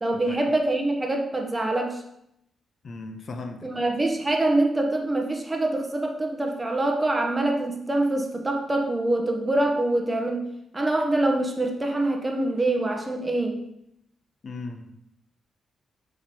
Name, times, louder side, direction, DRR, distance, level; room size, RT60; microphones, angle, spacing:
voice 1, 0.0-2.0 3.6-10.4 10.7-13.6, right 2 dB, 20° right, 3 dB, 1.0 m, -25 dB
voice 2, 2.8-3.7 14.4-15.0, left 3 dB, 45° left, 6 dB, 0.7 m, -37 dB
5.7 x 4.9 x 4.3 m, 0.78 s
cardioid pair, 105°, 0 cm